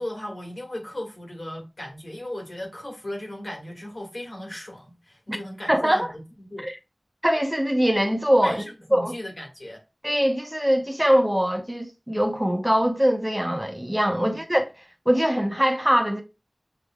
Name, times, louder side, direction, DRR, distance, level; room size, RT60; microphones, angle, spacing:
voice 1, 0.0-6.6 8.4-9.8 14.1-14.4, left 1 dB, 70° left, 2.0 m, -36 dB
voice 2, 5.7-6.1 6.6-6.7 7.2-8.6 8.9-9.1 10.0-14.7 15.1-16.2, equal, 10° right, 0.9 m, -22 dB
6.7 x 3.2 x 2.4 m
wide cardioid pair, 45°, 0 cm